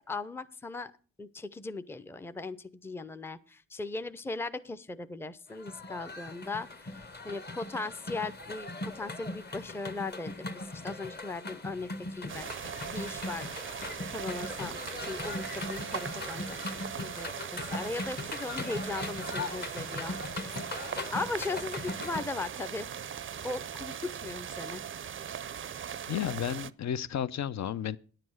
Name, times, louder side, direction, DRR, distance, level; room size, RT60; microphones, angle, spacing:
voice 1, 0.1-0.9 1.2-8.7 8.9-10.4 10.8-12.5 12.9-13.5 14.1-16.6 17.0-20.2 21.1-22.9 23.4-24.8, left 3 dB, 10° left, 0.5 m, -38 dB
sound 1, 5.5-22.3, left 2 dB, 35° left, 1.1 m, -39 dB
sound 2, 12.3-26.7, right 8 dB, 40° right, 0.5 m, -40 dB
voice 2, 26.1-28.0, left 9 dB, 65° left, 0.6 m, -32 dB
10.5 x 7.6 x 6.2 m
cardioid pair, 85°, 31 cm